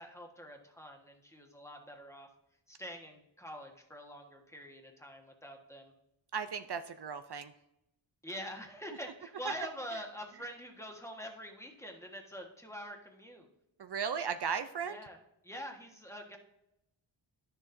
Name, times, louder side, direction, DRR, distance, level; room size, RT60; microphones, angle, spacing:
voice 1, 0.0-2.3 2.7-5.9 8.2-13.5 14.8-15.2 15.4-16.4, equal, 5° left, 1 dB, 1.3 m, -45 dB
voice 2, 6.3-7.5 13.8-15.0, right 6 dB, 60° right, 10 dB, 0.5 m, -36 dB
11.5 x 6.8 x 2.6 m, 0.85 s
wide cardioid pair, 70°, 46 cm